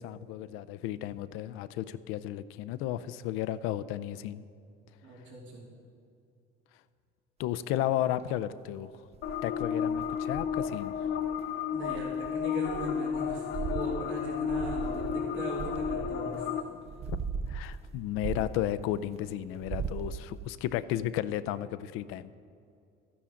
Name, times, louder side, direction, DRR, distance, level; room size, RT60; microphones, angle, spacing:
voice 1, 0.0-4.4 7.4-8.9 9.4-11.0 17.1-17.2 17.5-22.4, left 12 dB, 85° left, 14 dB, 0.5 m, -33 dB
voice 2, 5.0-5.7 7.7-7.8 11.7-16.5, right 2 dB, 65° right, -4 dB, 2.7 m, -39 dB
sound 1, 9.1-11.4 11.8-16.5 16.9-19.1 19.5-20.5, right 6 dB, 30° right, 0.4 m, -39 dB
sound 2, 9.2-16.6, left 7 dB, 65° left, 0.9 m, -32 dB
13.0 x 10.0 x 3.8 m, 2.5 s
cardioid pair, 115°, 21 cm